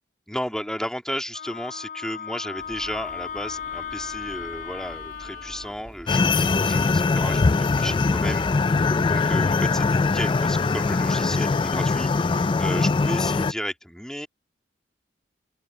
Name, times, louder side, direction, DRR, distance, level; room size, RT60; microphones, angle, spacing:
voice 1, 0.3-14.3, equal, 5° left, 2.2 m, -33 dB
Wind instrument woodwind instrument, 1.3-5.7, left 7 dB, 50° left, 2.7 m, -36 dB
sound 1, 2.6-11.2, right 1 dB, 20° right, 1.4 m, -47 dB
sound 2, 6.1-13.5, left 4 dB, 25° left, 0.3 m, -22 dB
open air
head